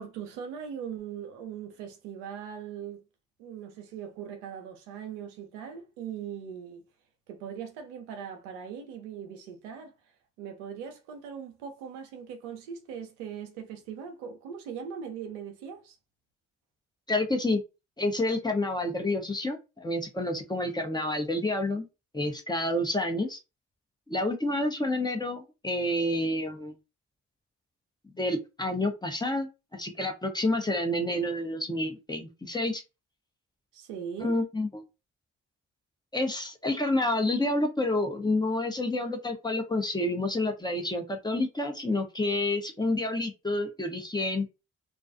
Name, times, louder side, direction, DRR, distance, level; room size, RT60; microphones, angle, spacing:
voice 1, 0.0-3.0 3.4-6.8 7.3-9.9 10.4-16.0 33.7-34.3, right 7 dB, 80° right, 0.6 m, -40 dB
voice 2, 17.1-17.6 18.0-21.9 22.1-23.4 24.1-26.7 28.1-32.8 34.2-34.8 36.1-44.5, left 1 dB, 10° left, 0.8 m, -29 dB
2.3 x 2.3 x 2.5 m
hypercardioid pair, 40°, 36 cm